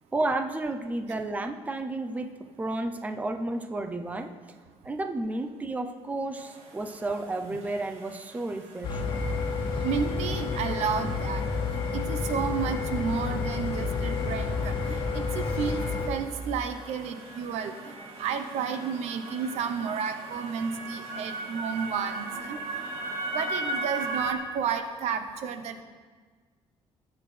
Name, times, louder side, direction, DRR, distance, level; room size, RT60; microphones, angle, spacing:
voice 1, 0.1-4.3 4.8-9.2, right 2 dB, 15° right, 7 dB, 0.6 m, -32 dB
sound 1, 6.4-24.3, right 2 dB, 65° right, 2.1 m, -39 dB
sound 2, 8.8-16.1, left 4 dB, 50° left, 2.2 m, -30 dB
voice 2, 9.8-11.4 11.9-17.9 18.2-22.6 23.3-25.8, right 6 dB, 80° right, 8 dB, 1.0 m, -32 dB
20.0 x 8.2 x 3.4 m, 1.5 s
cardioid pair, 145°, 11 cm